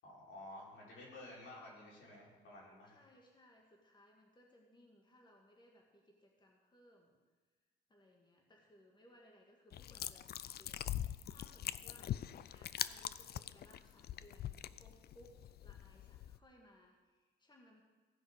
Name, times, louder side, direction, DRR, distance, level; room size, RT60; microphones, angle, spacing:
voice 1, 0.0-3.0, left 1 dB, 75° left, -5 dB, 4.3 m, -53 dB
voice 2, 2.9-7.2 7.9-12.2 12.5-17.8, equal, 20° left, 0 dB, 1.8 m, -65 dB
sound 1, 9.7-16.4, left 11 dB, 55° left, 0.4 m, -43 dB
16.0 x 5.3 x 6.5 m, 1.4 s
cardioid pair, 90°, 20 cm